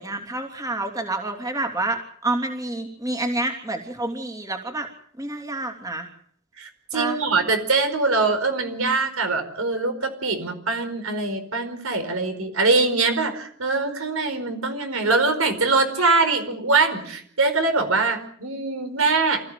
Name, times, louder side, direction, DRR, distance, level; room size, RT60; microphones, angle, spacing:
voice 1, 0.0-4.9 5.2-6.1 6.9-7.2, right 2 dB, 15° right, 3 dB, 3.0 m, -28 dB
voice 2, 6.6-19.4, right 3 dB, 75° right, 8 dB, 4.8 m, -23 dB
28.0 x 15.5 x 7.7 m, 0.62 s
head